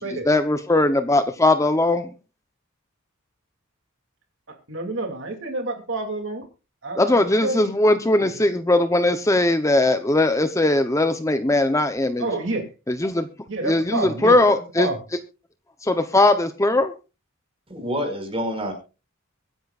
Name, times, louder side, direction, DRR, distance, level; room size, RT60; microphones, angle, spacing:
voice 1, 0.3-2.1 7.0-12.2 12.9-13.3 13.6-14.9 15.8-16.9, left 2 dB, 15° left, 8 dB, 0.8 m, -19 dB
voice 2, 4.7-6.5 6.8-7.8 8.2-8.3 12.2-12.7 13.5-14.4 14.8-15.0, right 2 dB, 65° right, 4 dB, 2.8 m, -28 dB
voice 3, 17.7-18.7, equal, 30° right, 4 dB, 5.3 m, -27 dB
23.5 x 10.0 x 2.5 m, 0.31 s
head